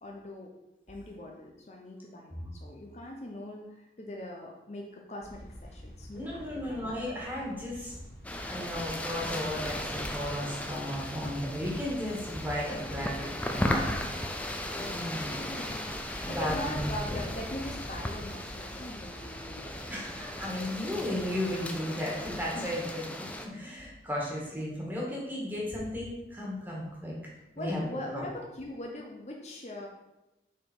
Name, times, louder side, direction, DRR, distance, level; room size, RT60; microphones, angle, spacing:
voice 1, 0.0-0.5 0.9-7.2 14.6-15.9 16.3-20.0 22.5-22.7 27.6-29.9, left 1 dB, 40° left, 0 dB, 0.7 m, -41 dB
sound 1, 5.2-20.6, equal, 70° left, 2.0 m, -49 dB
voice 2, 6.1-8.0 8.5-13.9 14.8-15.4 16.2-17.2 19.9-23.3 23.5-27.1 27.5-27.8 28.1-28.2, left 1 dB, 10° right, -4 dB, 1.7 m, -35 dB
sound 2, 8.2-23.5, left 1 dB, 10° left, 0.4 m, -36 dB
6.8 x 4.8 x 4.5 m, 0.98 s
head